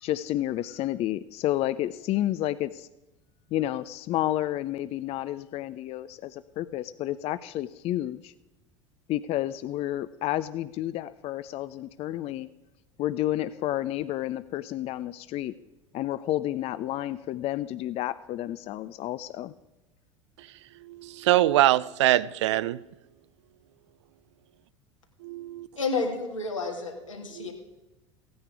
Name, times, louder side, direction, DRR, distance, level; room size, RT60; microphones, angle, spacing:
voice 1, 0.0-2.9 3.5-8.3 9.1-12.5 13.0-15.5 15.9-19.5, left 14 dB, 40° left, 0.4 m, -30 dB
voice 2, 20.8-22.8 25.3-25.7 27.4-27.5, right 14 dB, 65° right, 0.4 m, -23 dB
voice 3, 25.8-27.5, left 3 dB, 85° left, 2.0 m, -30 dB
16.0 x 9.4 x 4.7 m
figure-of-eight pair, 70°, 16 cm